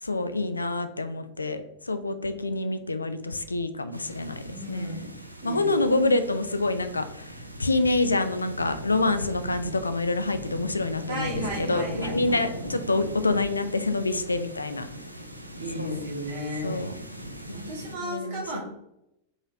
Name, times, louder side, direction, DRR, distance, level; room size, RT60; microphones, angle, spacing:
voice 1, 0.0-5.1 5.4-14.9 15.7-16.0 16.6-16.9 18.0-18.6, left 2 dB, 80° left, 10 dB, 0.4 m, -27 dB
sound 1, 3.9-18.0, right 1 dB, 85° right, 0.4 m, -40 dB
voice 2, 4.4-5.1 5.4-5.7 11.1-12.4 15.6-16.8 17.5-18.6, equal, 55° right, -2 dB, 1.5 m, -34 dB
4.8 x 3.9 x 2.6 m, 0.83 s
figure-of-eight pair, 90°, 0 cm